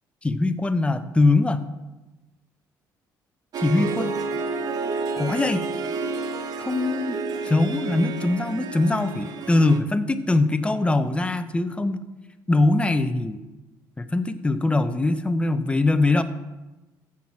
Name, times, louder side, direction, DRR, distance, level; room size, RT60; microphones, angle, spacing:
voice 1, 0.2-1.6 3.6-4.2 5.2-5.7 6.6-7.2 7.4-12.0 12.5-13.4 14.0-16.2, left 2 dB, 15° left, 10 dB, 0.8 m, -22 dB
Harp, 3.5-9.8, right 4 dB, 55° right, 0.9 m, -30 dB
14.5 x 6.1 x 4.6 m, 1.1 s
cardioid pair, 90°, 8 cm